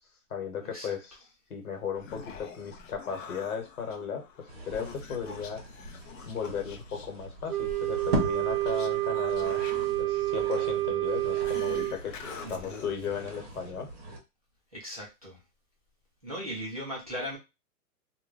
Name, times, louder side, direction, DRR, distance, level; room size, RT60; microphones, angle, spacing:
voice 1, 0.3-1.2 1.5-5.6 6.3-9.6 10.0-12.2 12.5-13.9, left 6 dB, 75° left, 4 dB, 1.2 m, -36 dB
Human voice, 1.7-14.0, left 6 dB, 60° left, 0.6 m, -47 dB
sound 1, 4.5-14.2, right 1 dB, 40° right, 0.8 m, -39 dB
Wind instrument woodwind instrument, 7.5-12.0, right 17 dB, 75° right, 0.7 m, -29 dB
voice 2, 12.4-12.8 14.7-15.4 16.2-17.4, equal, 25° right, -6 dB, 0.4 m, -38 dB
2.2 x 2.2 x 3.8 m, 0.25 s
hypercardioid pair, 180°, 44 cm